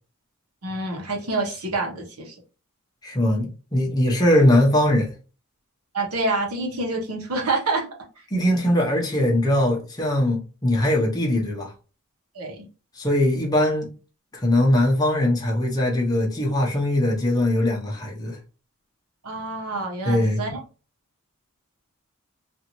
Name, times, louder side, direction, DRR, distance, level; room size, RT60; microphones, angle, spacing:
voice 1, 0.6-2.3 5.9-7.9 12.3-12.6 19.2-20.6, right 2 dB, 85° right, 1.0 m, -27 dB
voice 2, 3.0-5.1 8.3-11.7 13.0-13.9 14.3-18.4 20.0-20.4, left 1 dB, 20° left, 0.7 m, -21 dB
2.7 x 2.5 x 2.9 m
head